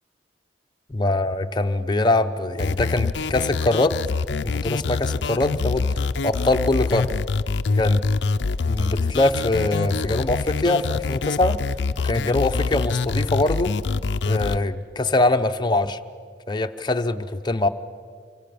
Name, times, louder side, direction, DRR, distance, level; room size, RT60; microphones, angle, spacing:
voice 1, 0.9-4.0 4.4-7.2 7.7-8.0 8.6-11.6 12.0-13.8 14.2-16.0 16.5-17.7, left 2 dB, 25° left, 7 dB, 0.8 m, -23 dB
sound 1, 2.6-14.6, left 4 dB, 90° left, 0.6 m, -25 dB
26.5 x 24.5 x 7.0 m, 2.1 s
head